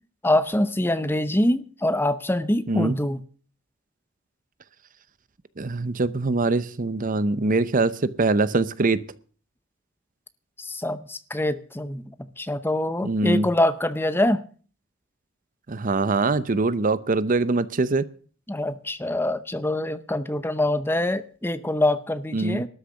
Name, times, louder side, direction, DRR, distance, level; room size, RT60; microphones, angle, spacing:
voice 1, 0.2-3.2 10.6-14.4 18.5-22.7, left 1 dB, 10° left, 0.7 m, -24 dB
voice 2, 5.6-9.0 13.0-13.5 15.7-18.1 22.3-22.6, right 3 dB, 40° right, 0.7 m, -23 dB
13.0 x 6.6 x 9.8 m
head